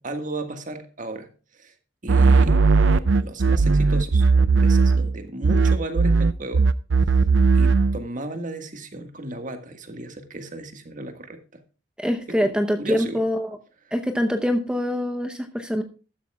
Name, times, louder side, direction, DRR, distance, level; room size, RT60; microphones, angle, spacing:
voice 1, 0.0-1.7 2.0-2.6 2.9-6.6 7.5-11.6 12.3-12.5 12.8-13.2, right 2 dB, 45° right, 7 dB, 1.7 m, -35 dB
sound 1, 2.1-5.2 5.4-8.0, right 4 dB, 85° right, 0.5 m, -17 dB
voice 2, 12.0-13.6 13.9-15.8, equal, 5° right, 6 dB, 0.8 m, -24 dB
14.0 x 12.5 x 2.3 m, 0.35 s
head